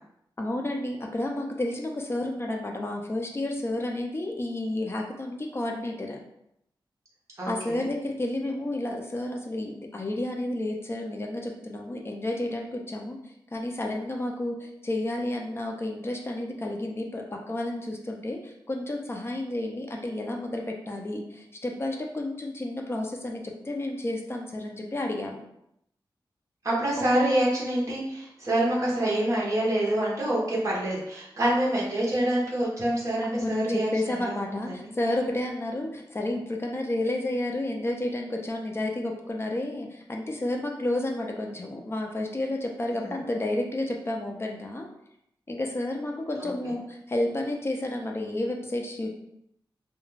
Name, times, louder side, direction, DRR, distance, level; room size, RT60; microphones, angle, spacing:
voice 1, 0.4-6.2 7.5-13.2 13.5-25.4 27.0-27.1 33.2-44.9 45.5-49.1, left 1 dB, 30° left, 1 dB, 0.4 m, -31 dB
voice 2, 7.4-7.9 26.6-34.4 34.7-34.8 42.9-43.2 46.4-46.7, right 1 dB, 35° right, -5 dB, 0.8 m, -26 dB
2.3 x 2.2 x 3.1 m, 0.76 s
wide cardioid pair, 115°, 9 cm